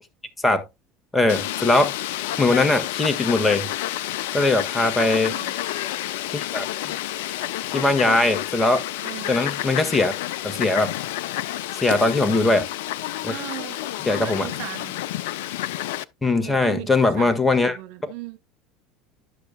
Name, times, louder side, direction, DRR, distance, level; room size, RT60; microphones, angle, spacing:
voice 1, 1.1-1.9 2.4-3.7 4.3-5.4 6.3-7.0 7.7-8.8 9.3-10.1 10.4-10.9 11.7-12.7 13.2-13.4 14.0-14.5 16.2-17.8, left 2 dB, 10° left, 1.6 m, -20 dB
Fowl, 1.3-16.0, left 14 dB, 60° left, 0.4 m, -29 dB
voice 2, 9.0-9.3 12.0-12.6 13.3-13.8 14.1-15.0 16.4-17.3 17.6-18.4, right 15 dB, 55° right, 1.0 m, -37 dB
12.0 x 6.6 x 2.3 m
figure-of-eight pair, 70°, 0 cm